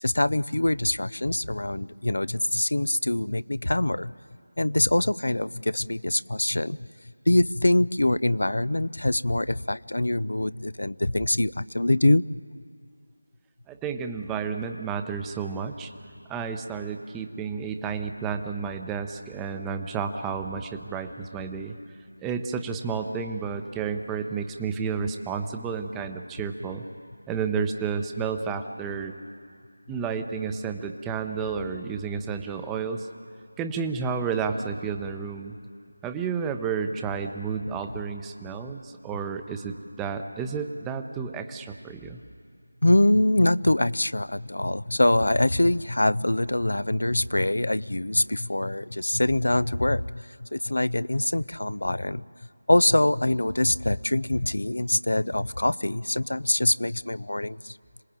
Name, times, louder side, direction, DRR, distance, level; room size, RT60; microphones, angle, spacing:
voice 1, 0.0-4.1 4.6-6.8 7.3-12.2 42.8-52.2 52.7-57.8, left 1 dB, 75° left, 19 dB, 0.5 m, -24 dB
voice 2, 13.7-15.9 16.3-21.7 22.2-26.8 27.3-29.1 29.9-33.1 33.6-35.6 36.0-42.2, right 5 dB, 5° right, 6 dB, 0.8 m, -31 dB
26.0 x 19.5 x 8.9 m, 2.3 s
figure-of-eight pair, 165°, 0 cm